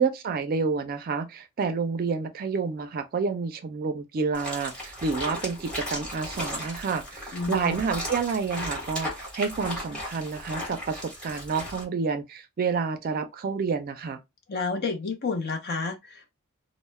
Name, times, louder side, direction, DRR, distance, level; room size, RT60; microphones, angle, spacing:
voice 1, 0.0-14.2, right 5 dB, 45° right, 0.4 m, -29 dB
sound 1, 4.3-11.8, equal, 5° left, 1.1 m, -36 dB
voice 2, 7.3-7.7 14.5-16.3, left 4 dB, 50° left, 0.6 m, -30 dB
2.2 x 2.0 x 3.2 m
head